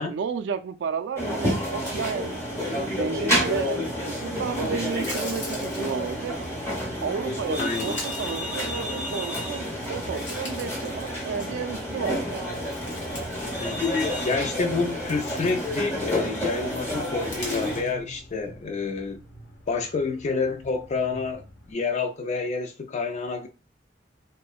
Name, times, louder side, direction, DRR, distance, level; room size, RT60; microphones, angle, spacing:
voice 1, 0.0-2.4 2.7-6.4 7.0-12.5, right 6 dB, 70° right, 0.3 m, -32 dB
sound 1, 1.2-17.8, equal, 15° left, 0.8 m, -29 dB
sound 2, 3.8-21.7, equal, 55° left, 0.9 m, -49 dB
sound 3, 4.5-6.5 7.2-9.2 9.6-11.8 12.1-13.6 13.8-14.0 14.6-16.3 17.0-17.9, left 2 dB, 80° left, 1.2 m, -42 dB
voice 2, 7.6-8.0 13.6-19.2 19.7-23.5, left 4 dB, 40° left, 0.4 m, -29 dB
2.6 x 2.1 x 2.3 m
head